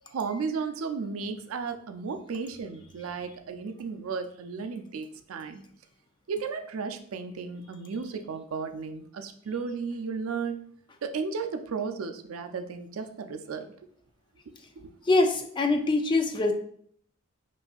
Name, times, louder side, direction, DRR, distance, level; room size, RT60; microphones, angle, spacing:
voice 1, 0.1-5.6 6.3-10.6 11.0-13.7 14.8-14.9, right 5 dB, 85° right, 8 dB, 0.4 m, -34 dB
voice 2, 15.1-16.5, left 2 dB, 25° left, 6 dB, 0.3 m, -23 dB
5.3 x 2.6 x 2.3 m, 0.63 s
head